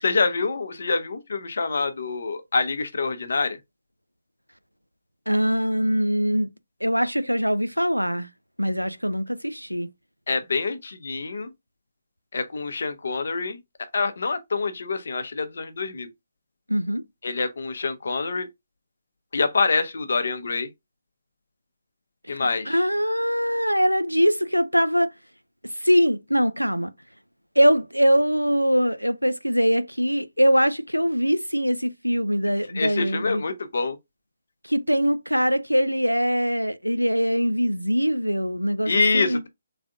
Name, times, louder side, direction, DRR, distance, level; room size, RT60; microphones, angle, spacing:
voice 1, 0.0-3.6 10.3-11.5 12.3-13.6 13.9-16.1 17.2-18.5 19.3-20.7 22.3-22.8 32.7-34.0 38.9-39.5, left 4 dB, 55° left, 0.7 m, -26 dB
voice 2, 5.3-6.5 6.8-8.3 8.6-9.9 16.7-17.0 22.3-25.1 25.8-26.9 27.6-33.4 34.6-39.4, equal, 90° right, 0.4 m, -22 dB
3.5 x 3.3 x 2.4 m
figure-of-eight pair, 140°, 0 cm